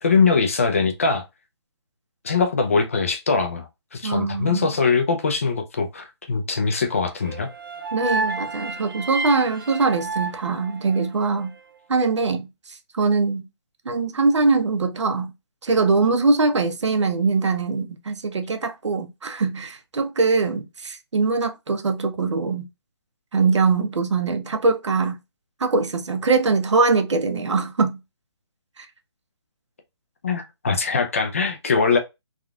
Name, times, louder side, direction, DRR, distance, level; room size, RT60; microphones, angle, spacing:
voice 1, 0.0-1.2 2.2-7.5 30.2-32.0, left 4 dB, 30° left, 0.4 m, -22 dB
voice 2, 4.0-4.7 7.9-11.5 11.9-13.5 13.9-15.3 15.6-22.7 23.3-25.2 25.6-28.0 28.8-28.9, right 4 dB, 90° right, 0.7 m, -22 dB
sound 1, 7.2-11.4, right 3 dB, 50° right, 0.6 m, -31 dB
3.5 x 2.3 x 2.3 m
hypercardioid pair, 170°, 15 cm